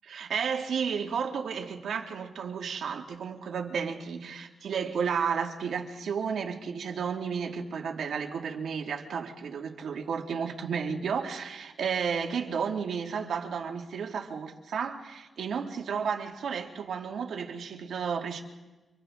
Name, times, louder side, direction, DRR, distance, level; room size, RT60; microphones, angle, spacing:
voice 1, 0.0-18.4, right 6 dB, 80° right, 2.2 m, -32 dB
29.5 x 25.0 x 3.7 m
wide cardioid pair, 115°, 0 cm